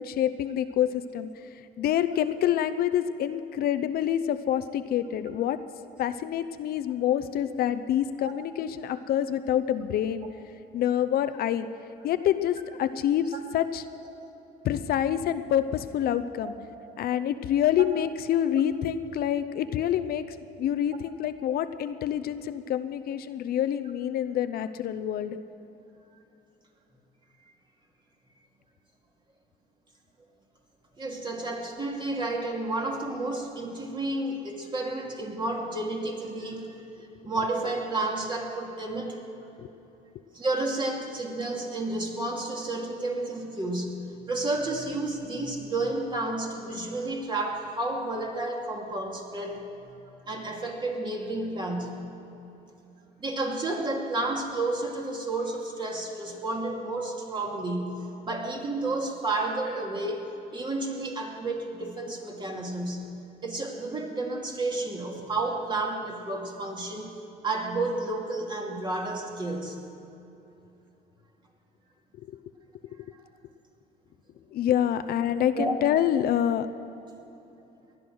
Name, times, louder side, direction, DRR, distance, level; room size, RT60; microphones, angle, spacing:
voice 1, 0.0-1.5 1.8-5.6 6.0-10.3 10.7-11.7 12.0-13.8 14.6-16.5 17.0-25.4 39.6-39.7 72.3-72.4 74.5-76.7, left 10 dB, 65° left, 11 dB, 0.7 m, -27 dB
voice 2, 31.0-36.8 37.2-39.2 40.3-50.0 50.3-52.0 53.2-63.1 63.4-67.1 67.4-69.8 75.5-75.7, right 2 dB, 25° right, 0 dB, 2.6 m, -31 dB
19.0 x 12.0 x 6.3 m, 3.0 s
cardioid pair, 110°, 17 cm